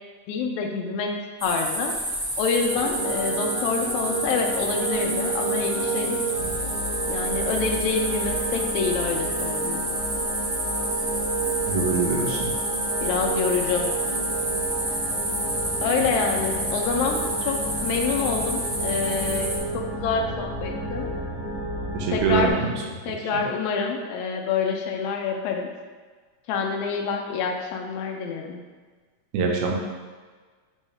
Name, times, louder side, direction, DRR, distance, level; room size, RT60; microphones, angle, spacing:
voice 1, 0.3-1.1 1.4-1.9 2.4-6.2 7.1-9.9 13.0-13.9 15.8-21.1 22.1-22.5 23.1-25.7 26.5-28.6, left 5 dB, 85° left, 2 dB, 1.9 m, -27 dB
sound 1, 1.4-19.6, right 1 dB, 30° right, 0.9 m, -29 dB
sound 2, 2.6-22.5, right 2 dB, 35° left, 1.0 m, -31 dB
voice 2, 11.7-12.5 21.9-22.7 29.3-29.7, right 4 dB, 85° right, 0 dB, 2.1 m, -24 dB
4.5 x 3.6 x 3.2 m, 1.4 s
omnidirectional pair, 3.4 m